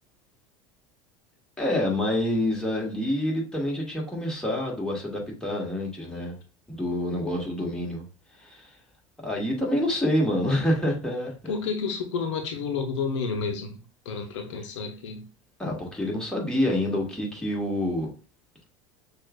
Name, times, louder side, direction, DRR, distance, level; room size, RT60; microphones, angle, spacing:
voice 1, 1.6-6.3 6.7-8.0 8.3-8.8 9.2-11.5 15.6-18.1, left 1 dB, 5° left, -3 dB, 1.7 m, -27 dB
voice 2, 11.5-15.3, left 5 dB, 75° left, 4 dB, 0.7 m, -30 dB
6.2 x 2.4 x 2.4 m, 0.35 s
hypercardioid pair, 80°, 16 cm